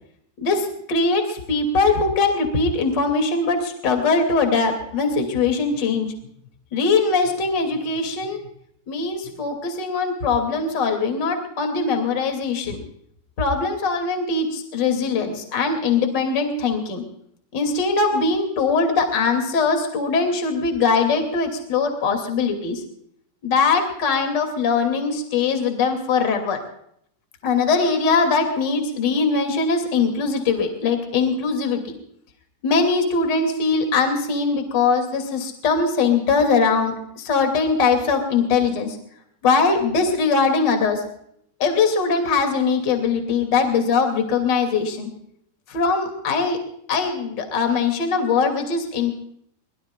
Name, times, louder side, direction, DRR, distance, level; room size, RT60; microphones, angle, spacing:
voice 1, 0.4-6.1 6.7-8.4 8.9-12.8 13.4-17.0 17.5-22.8 23.4-26.6 27.4-32.0 32.6-39.0 39.4-41.0 41.6-45.1 45.7-46.6 46.9-49.1, left 4 dB, 30° left, 5 dB, 2.8 m, -21 dB
24.5 x 21.0 x 2.4 m, 0.69 s
omnidirectional pair, 4.7 m